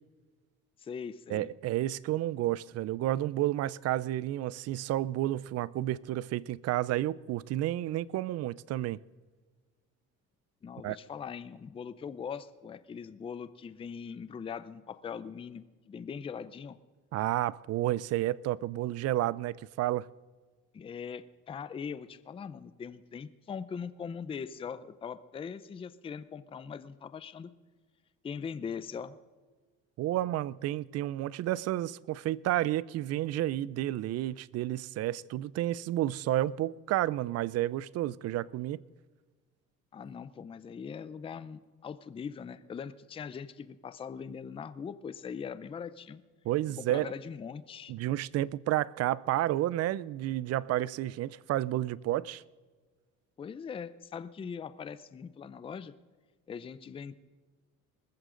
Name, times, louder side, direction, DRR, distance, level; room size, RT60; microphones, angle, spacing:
voice 1, 0.8-1.5 10.6-16.8 20.7-27.5 28.2-29.2 39.9-46.2 46.8-47.9 53.4-55.9 56.5-57.1, left 6 dB, 15° left, 0.5 m, -41 dB
voice 2, 1.3-9.0 10.8-11.0 17.1-20.1 30.0-38.8 46.5-47.1 47.9-52.4, right 14 dB, 50° right, 0.4 m, -31 dB
21.0 x 14.5 x 3.8 m
cardioid pair, 150°, 32 cm